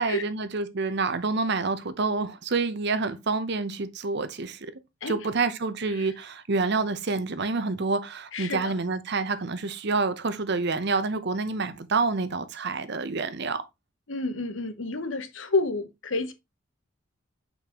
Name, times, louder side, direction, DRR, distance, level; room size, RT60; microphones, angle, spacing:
voice 1, 0.0-4.7 5.1-13.6, right 4 dB, 60° right, 0.8 m, -28 dB
voice 2, 8.3-8.7 14.1-16.3, left 3 dB, 85° left, 1.0 m, -29 dB
7.2 x 5.3 x 3.0 m
head